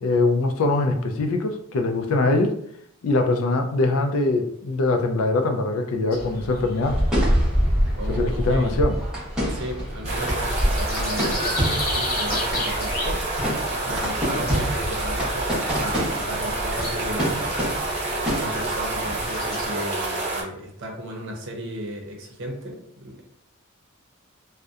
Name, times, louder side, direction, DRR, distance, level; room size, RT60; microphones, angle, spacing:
voice 1, 0.0-2.5 3.0-7.0 8.1-9.0, left 2 dB, 75° left, 6 dB, 0.4 m, -22 dB
sound 1, 6.1-19.6, left 1 dB, 45° left, 1.1 m, -35 dB
sound 2, 6.8-19.7, equal, 5° right, 0.9 m, -27 dB
voice 2, 8.0-8.8 9.5-13.2 13.8-17.6 17.9-23.2, equal, 60° right, 1 dB, 0.6 m, -35 dB
sound 3, 10.0-20.4, right 2 dB, 30° right, 0.9 m, -28 dB
2.7 x 2.1 x 2.3 m, 0.72 s
head